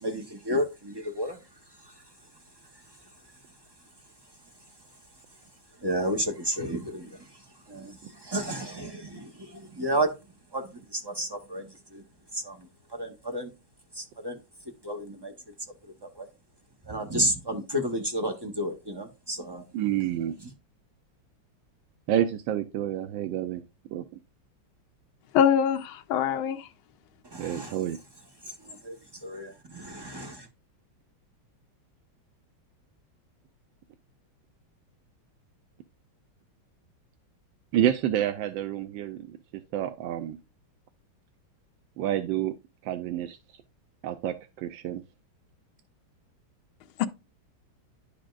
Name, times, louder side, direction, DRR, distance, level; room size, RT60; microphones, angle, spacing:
voice 1, 0.0-1.4 5.8-7.2 7.7-10.1 10.5-11.7 11.9-12.0 12.3-12.6 12.9-13.5 14.0-14.4 14.8-15.3 16.0-16.3 16.9-19.6 27.3-27.8 28.6-28.9 29.2-30.2, right 1 dB, 35° right, 0.4 m, -31 dB
voice 2, 19.7-20.4 22.1-23.6 23.9-24.0 27.4-28.0 37.7-39.4 39.7-40.4 42.0-42.5 42.8-43.6 44.0-45.0, right 11 dB, 75° right, 1.3 m, -29 dB
voice 3, 25.3-26.7 47.0-47.1, left 8 dB, 85° left, 1.5 m, -23 dB
10.5 x 5.0 x 2.4 m
omnidirectional pair, 2.2 m